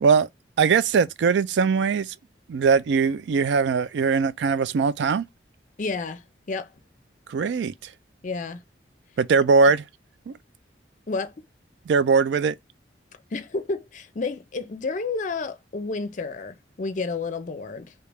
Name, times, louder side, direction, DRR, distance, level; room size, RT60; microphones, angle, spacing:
voice 1, 0.6-2.1 2.5-5.3 7.3-7.7 9.2-9.8 10.3-10.4 11.9-12.6, right 5 dB, 70° right, 0.3 m, -20 dB
voice 2, 5.8-6.7 8.2-8.6 9.6-9.7 11.1-11.3 13.3-17.9, left 3 dB, 45° left, 0.5 m, -31 dB
3.1 x 2.8 x 3.3 m
head